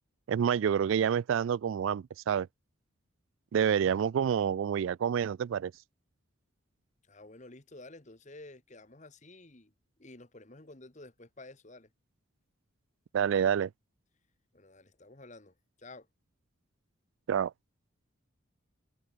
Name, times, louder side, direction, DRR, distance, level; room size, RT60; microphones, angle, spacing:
voice 1, 0.3-2.5 3.5-5.7 13.1-13.7 17.3-17.5, right 8 dB, 70° right, 0.3 m, -28 dB
voice 2, 7.1-9.7 10.0-11.9 14.5-16.1, left 2 dB, 35° left, 1.5 m, -51 dB
head